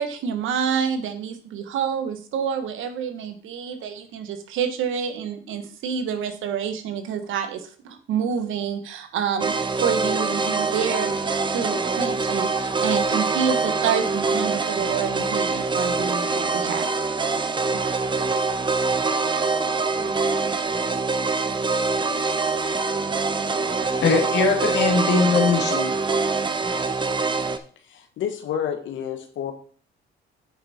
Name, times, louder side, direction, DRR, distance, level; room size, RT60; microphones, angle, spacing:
voice 1, 0.0-16.9 17.7-17.8, right 7 dB, 85° right, 8 dB, 1.3 m, -28 dB
sound 1, 9.4-27.6, right 4 dB, 25° right, 0.8 m, -24 dB
voice 2, 23.9-25.9, left 4 dB, 60° left, 1 dB, 2.3 m, -21 dB
voice 3, 27.9-29.5, left 9 dB, 75° left, 7 dB, 1.4 m, -29 dB
8.8 x 5.8 x 4.3 m, 0.43 s
cardioid pair, 90°, 20 cm